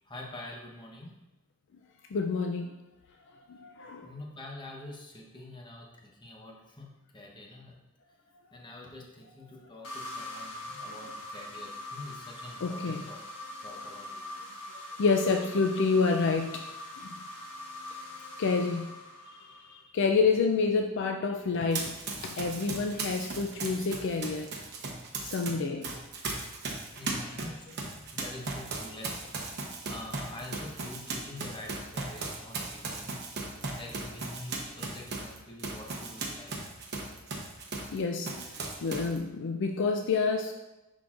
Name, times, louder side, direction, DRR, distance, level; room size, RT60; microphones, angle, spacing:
voice 1, 0.1-1.1 4.0-7.8 8.5-13.2 13.6-14.1 27.0-29.5 29.9-33.2 33.8-36.5, left 1 dB, 20° left, -1 dB, 0.9 m, -46 dB
voice 2, 2.1-2.7 3.5-4.1 12.6-13.0 15.0-16.6 17.0-17.1 18.4-18.9 19.5-22.0 22.2-24.5 25.2-25.9 37.9-38.5 38.8-40.5, left 4 dB, 55° left, 3 dB, 0.4 m, -28 dB
sound 1, 9.8-19.8, left 2 dB, 85° left, 1.4 m, -43 dB
Run, 21.7-25.5 25.8-38.0 38.2-39.2, right 3 dB, 50° right, 1.0 m, -37 dB
10.5 x 3.9 x 2.5 m, 1.0 s
head